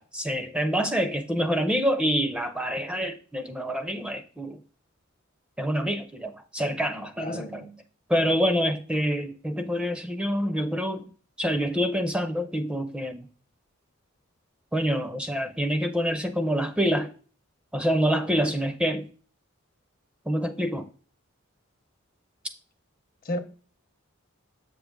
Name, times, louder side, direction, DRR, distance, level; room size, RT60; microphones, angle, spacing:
voice 1, 0.0-4.6 5.6-7.7 8.1-11.1 11.4-13.3 14.7-17.1 17.7-19.1 20.3-20.9, equal, 5° right, 0.4 m, -26 dB
voice 2, 7.2-7.8 23.2-23.4, left 1 dB, 45° left, 0.7 m, -33 dB
7.7 x 5.0 x 3.5 m
head